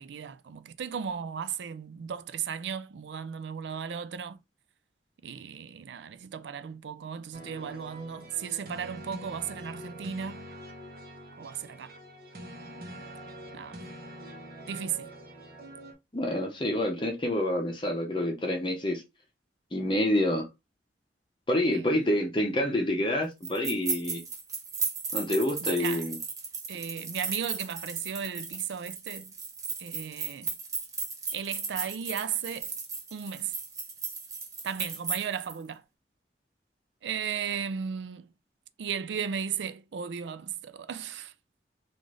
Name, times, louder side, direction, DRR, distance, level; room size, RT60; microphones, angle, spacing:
voice 1, 0.0-4.4 5.2-10.5 11.4-11.9 13.5-13.8 14.7-15.1 21.7-21.9 25.6-26.0 26.7-29.3 29.8-30.5 31.3-32.7 33.1-33.5 34.6-35.8 37.0-38.2 38.8-41.3, right 7 dB, 85° right, 0.4 m, -35 dB
sound 1, 7.3-15.9, right 1 dB, 55° right, 1.0 m, -44 dB
voice 2, 16.1-19.0 19.7-20.4 21.5-24.2 25.1-26.2, left 1 dB, 25° left, 0.7 m, -27 dB
sound 2, 23.4-35.5, right 4 dB, 20° right, 0.7 m, -36 dB
3.8 x 2.5 x 3.1 m
head